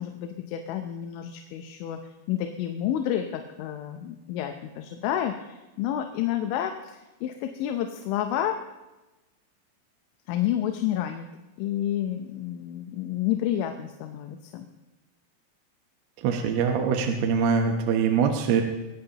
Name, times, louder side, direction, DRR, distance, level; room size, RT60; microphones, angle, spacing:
voice 1, 0.0-2.0 2.3-8.6 10.3-11.3 11.6-14.7, left 11 dB, 85° left, 5 dB, 3.3 m, -30 dB
voice 2, 16.2-18.6, right 6 dB, 70° right, 3 dB, 2.8 m, -23 dB
22.0 x 17.0 x 2.9 m, 1.1 s
omnidirectional pair, 5.4 m